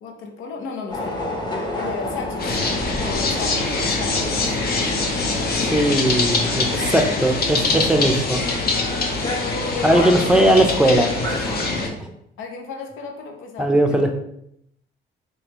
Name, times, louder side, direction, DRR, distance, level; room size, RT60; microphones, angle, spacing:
voice 1, 0.0-1.2 1.8-2.6 3.0-4.5 6.9-7.3 9.2-10.3 10.7-10.8 12.4-14.1, left 4 dB, 90° left, 2 dB, 0.7 m, -34 dB
sound 1, 0.9-11.8, left 1 dB, 20° left, 1.0 m, -32 dB
sound 2, 2.4-11.9, left 3 dB, 50° left, 0.7 m, -23 dB
voice 2, 5.6-8.4 9.8-11.5 13.6-14.1, right 1 dB, 5° right, 4 dB, 0.5 m, -19 dB
3.5 x 3.3 x 3.0 m, 0.77 s
cardioid pair, 90°, 20 cm